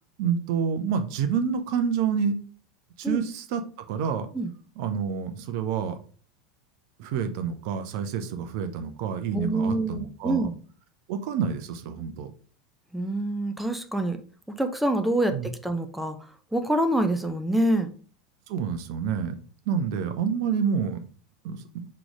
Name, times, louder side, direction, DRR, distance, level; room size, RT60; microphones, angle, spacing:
voice 1, 0.2-2.4 3.0-3.6 3.9-4.3 4.8-6.0 7.0-10.5 11.1-12.3 15.3-15.5 18.5-19.4 19.7-21.0 21.4-21.9, right 7 dB, 55° right, 9 dB, 0.8 m, -28 dB
voice 2, 9.3-10.6 12.9-14.2 14.5-16.2 16.5-17.9, right 1 dB, 5° right, 8 dB, 0.8 m, -26 dB
6.1 x 3.3 x 5.0 m, 0.41 s
figure-of-eight pair, 80°, 3 cm